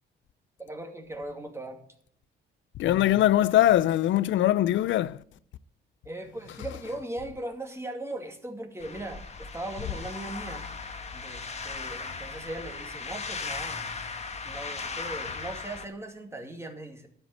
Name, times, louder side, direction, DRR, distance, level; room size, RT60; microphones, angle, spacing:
voice 1, 0.6-1.8 6.0-10.7 11.1-13.9 14.4-17.1, right 1 dB, 15° right, 2.4 m, -39 dB
voice 2, 2.8-5.2, left 13 dB, 75° left, 0.5 m, -22 dB
sound 1, 8.8-15.9, left 4 dB, 35° left, 1.4 m, -37 dB
12.0 x 5.7 x 8.2 m
cardioid pair, 90°, 20 cm